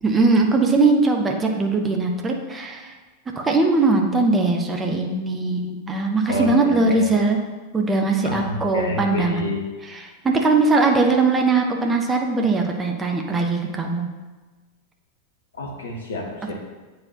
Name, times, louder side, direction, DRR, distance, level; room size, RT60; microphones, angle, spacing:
voice 1, 0.0-2.9 3.4-7.4 7.7-9.5 9.8-14.1, right 3 dB, 15° right, 2 dB, 0.8 m, -20 dB
voice 2, 6.3-7.0 8.2-9.6 15.6-16.5, left 2 dB, 65° left, 0 dB, 1.3 m, -28 dB
8.6 x 4.8 x 2.8 m, 1.3 s
figure-of-eight pair, 90°, 0 cm